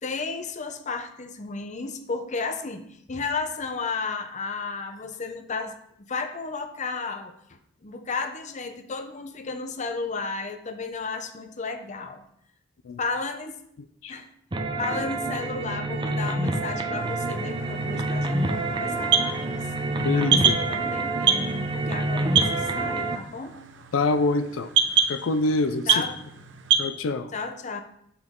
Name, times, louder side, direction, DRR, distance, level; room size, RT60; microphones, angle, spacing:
voice 1, 0.0-5.8 6.1-12.2 13.0-13.6 14.1-14.3 14.8-19.7 20.1-23.6 25.9-26.2 27.3-27.8, left 4 dB, 40° left, 7 dB, 0.7 m, -33 dB
sound 1, 14.5-23.2, right 2 dB, 25° right, 0.6 m, -27 dB
sound 2, 16.9-26.9, right 6 dB, 65° right, 0.7 m, -27 dB
voice 2, 20.0-20.6 23.9-24.7 25.1-26.0 26.8-27.3, left 3 dB, 85° left, 10 dB, 0.4 m, -25 dB
7.0 x 5.9 x 3.7 m, 0.73 s
head